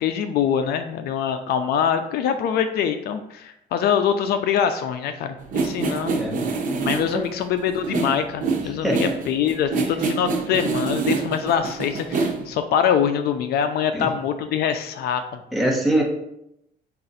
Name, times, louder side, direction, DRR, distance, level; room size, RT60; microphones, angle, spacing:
voice 1, 0.0-6.2 6.8-15.4, left 8 dB, 70° left, 9 dB, 0.4 m, -24 dB
sound 1, 5.4-12.5, right 4 dB, 50° right, 0.8 m, -26 dB
voice 2, 8.6-9.1 9.8-9.9 13.9-14.1 15.5-16.0, right 1 dB, ahead, -1 dB, 1.1 m, -23 dB
5.3 x 2.4 x 4.0 m, 0.80 s
cardioid pair, 110°, 17 cm